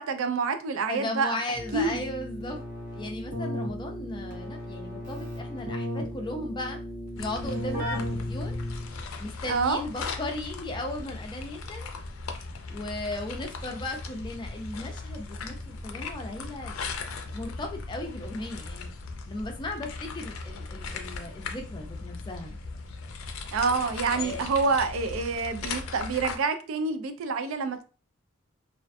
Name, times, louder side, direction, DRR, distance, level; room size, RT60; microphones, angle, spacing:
voice 1, 0.0-1.4 1.7-2.0 9.5-9.8 23.5-27.8, right 4 dB, 80° right, 0.4 m, -27 dB
voice 2, 0.9-2.6 2.9-6.8 7.1-8.6 9.2-11.9 12.7-16.8 17.3-18.9 19.3-22.6 24.1-24.5, left 2 dB, 20° left, 0.4 m, -36 dB
Keyboard (musical), 1.5-9.1, left 1 dB, 40° right, 0.8 m, -35 dB
sound 1, 7.2-26.4, left 4 dB, 90° left, 0.4 m, -38 dB
2.4 x 2.2 x 2.5 m
head